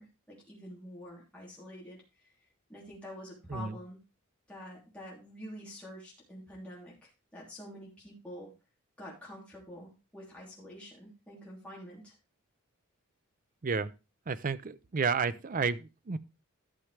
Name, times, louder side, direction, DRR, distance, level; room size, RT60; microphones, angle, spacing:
voice 1, 0.0-2.0 2.7-4.0 4.5-8.5 9.0-12.1, equal, 5° left, 3.1 m, -47 dB
voice 2, 14.3-16.2, right 5 dB, 40° right, 0.5 m, -31 dB
12.0 x 6.9 x 3.3 m
head